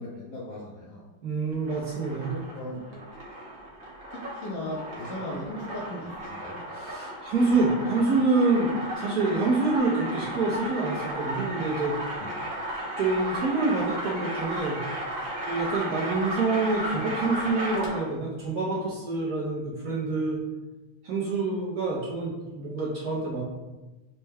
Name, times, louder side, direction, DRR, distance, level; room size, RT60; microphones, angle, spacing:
voice 1, 0.0-1.0 2.2-3.0 4.1-6.6 12.2-12.3 20.2-20.4, left 1 dB, 70° left, -4 dB, 1.0 m, -38 dB
voice 2, 1.2-2.3 6.7-11.9 13.0-14.8 15.5-20.4 21.0-23.4, right 3 dB, 65° right, -5 dB, 1.0 m, -27 dB
sound 1, 1.5-18.2, right 1 dB, 85° right, 0.5 m, -35 dB
5.3 x 2.2 x 3.3 m, 1.1 s
omnidirectional pair, 2.3 m